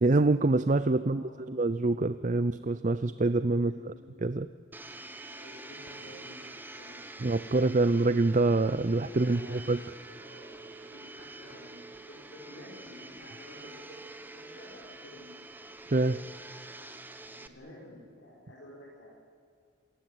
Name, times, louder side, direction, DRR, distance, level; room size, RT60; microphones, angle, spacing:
voice 1, 0.0-3.9 4.2-4.5 7.2-9.8 15.9-16.2, right 2 dB, 40° right, 13 dB, 0.5 m, -26 dB
voice 2, 0.9-1.6 3.5-4.3 5.3-7.0 7.4-8.0 9.1-9.8 10.1-15.4 17.4-19.1, left 1 dB, 65° left, -6 dB, 5.7 m, -52 dB
Domestic sounds home sounds, 4.7-17.5, right 2 dB, 10° right, 1.1 m, -46 dB
28.0 x 17.5 x 9.1 m, 2.3 s
head